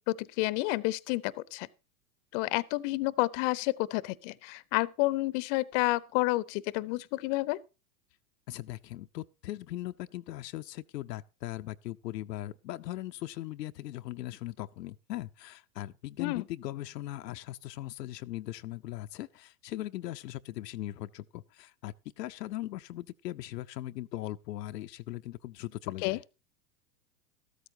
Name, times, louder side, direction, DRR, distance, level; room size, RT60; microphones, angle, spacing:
voice 1, 0.1-1.7 2.3-7.6 16.2-16.4 26.0-26.2, left 20 dB, 45° left, 0.7 m, -30 dB
voice 2, 8.5-26.2, left 15 dB, 75° left, 0.7 m, -39 dB
13.5 x 13.0 x 2.8 m
hypercardioid pair, 110°, 50 cm